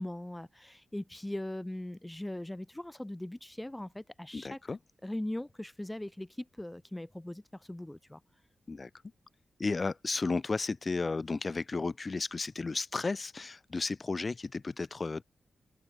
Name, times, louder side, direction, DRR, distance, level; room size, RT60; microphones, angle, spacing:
voice 1, 0.0-4.6 5.0-8.2, left 1 dB, 10° left, 2.1 m, -40 dB
voice 2, 4.3-4.8 8.7-8.9 9.6-15.2, left 3 dB, 30° left, 2.0 m, -33 dB
wide cardioid pair, 140°, 0 cm